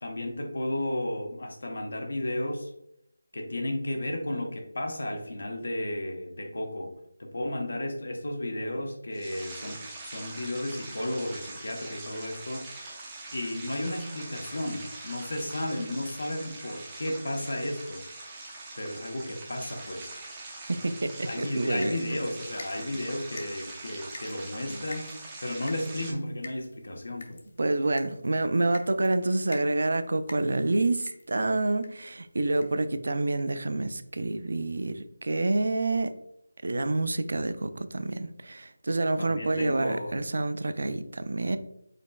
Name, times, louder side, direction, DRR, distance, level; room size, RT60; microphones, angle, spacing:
voice 1, 0.0-2.7 3.3-12.7 13.3-18.0 18.8-20.1 21.3-25.1 25.4-27.5 39.2-40.2, left 1 dB, 65° left, 2 dB, 0.8 m, -33 dB
sound 1, 9.1-26.1, right 2 dB, 10° right, 0.5 m, -43 dB
voice 2, 20.7-21.9 27.6-36.1 36.6-41.6, right 2 dB, 55° right, 11 dB, 0.4 m, -28 dB
sound 2, 21.5-32.1 32.6-32.9 33.4-33.5 33.8-33.9, left 2 dB, 40° left, 0.6 m, -49 dB
5.0 x 4.1 x 2.3 m, 0.77 s
figure-of-eight pair, 175°, 0 cm